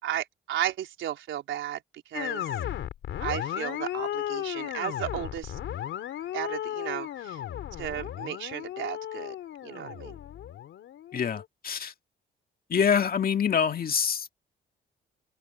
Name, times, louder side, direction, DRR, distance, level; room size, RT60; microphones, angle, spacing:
voice 1, 0.0-2.5 3.2-5.6 6.3-7.4 7.8-9.4 9.6-10.2, right 11 dB, 75° right, 4.2 m, -34 dB
sound 1, 2.1-11.4, left 11 dB, 75° left, 3.5 m, -35 dB
voice 2, 11.1-11.9 12.7-14.3, left 7 dB, 50° left, 2.1 m, -25 dB
cardioid pair, 90°, 20 cm